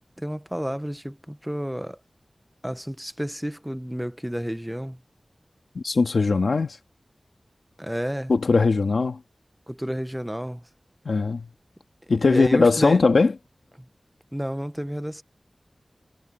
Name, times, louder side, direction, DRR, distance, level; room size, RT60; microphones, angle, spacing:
voice 1, 0.2-2.0 2.6-5.0 7.8-8.3 9.7-10.6 12.2-13.0 14.3-15.2, equal, 5° right, 1.1 m, -30 dB
voice 2, 5.8-6.8 8.3-9.2 11.1-11.5 12.1-13.3, left 4 dB, 90° left, 1.8 m, -20 dB
wide cardioid pair, 75°, 0 cm